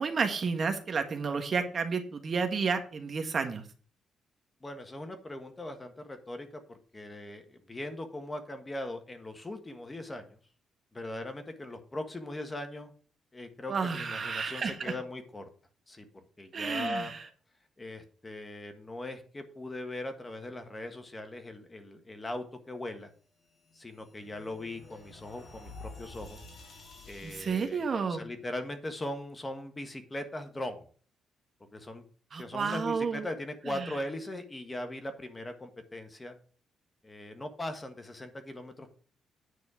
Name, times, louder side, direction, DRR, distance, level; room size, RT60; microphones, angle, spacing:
voice 1, 0.0-3.6 13.7-14.9 16.5-17.2 27.2-28.2 32.3-33.3 33.7-33.9, right 5 dB, 45° right, 6 dB, 1.5 m, -31 dB
voice 2, 4.6-10.4 10.9-12.9 13.3-15.5 15.9-17.1 17.8-23.1 23.7-26.4 27.1-30.8 31.7-32.0 32.4-36.3 37.0-38.9, left 1 dB, 20° left, 6 dB, 1.5 m, -40 dB
sound 1, 23.4-27.9, left 3 dB, 50° left, 4.2 m, -50 dB
9.5 x 4.3 x 7.0 m, 0.43 s
cardioid pair, 90°, 0 cm